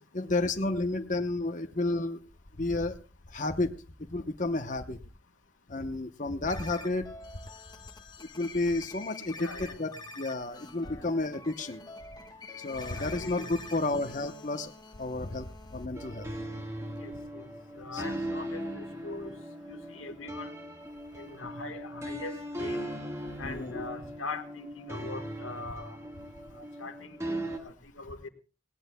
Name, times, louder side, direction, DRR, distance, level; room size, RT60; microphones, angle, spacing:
voice 1, 0.1-2.2 2.6-3.0 3.3-3.7 4.1-5.0 5.7-7.1 8.2-11.8 12.6-14.7 15.0-16.3 17.9-18.0 23.4-23.9, left 2 dB, 40° left, 6 dB, 0.8 m, -31 dB
sound 1, 6.5-15.9, left 3 dB, 20° left, 1.0 m, -46 dB
voice 2, 9.4-9.9 12.9-13.5 17.0-17.5 17.8-19.3 19.7-20.5 21.2-22.8 23.4-25.9 26.8-27.4 27.6-28.3, left 3 dB, 85° left, 7 dB, 1.6 m, -41 dB
sound 2, 15.9-27.6, right 1 dB, 15° right, 1.5 m, -39 dB
19.5 x 18.0 x 2.2 m, 0.33 s
head